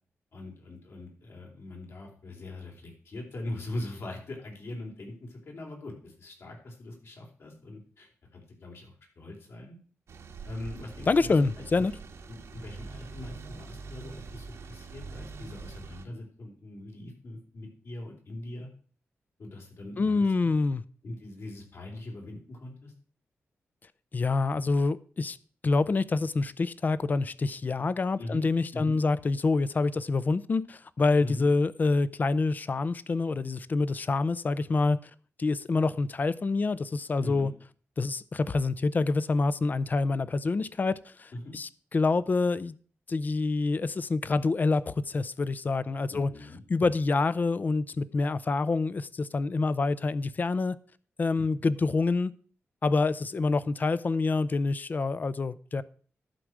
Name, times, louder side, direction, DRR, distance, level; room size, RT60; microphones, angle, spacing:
voice 1, 0.3-9.8 10.4-11.3 12.3-18.7 19.4-20.5 21.0-22.9 28.2-29.0 31.2-31.5 37.2-37.5 41.3-41.6 46.1-46.6 51.4-51.5, left 1 dB, 65° left, 4.0 m, -41 dB
sound 1, 10.1-16.1, right 4 dB, 80° right, 1.5 m, -44 dB
voice 2, 11.1-11.9 20.0-20.8 24.1-25.4 25.6-35.0 35.4-37.5 38.0-42.7 43.1-46.3 46.7-50.8 51.2-52.3 52.8-55.8, left 3 dB, 40° left, 0.6 m, -27 dB
11.5 x 4.8 x 7.6 m
wide cardioid pair, 125°, 5 cm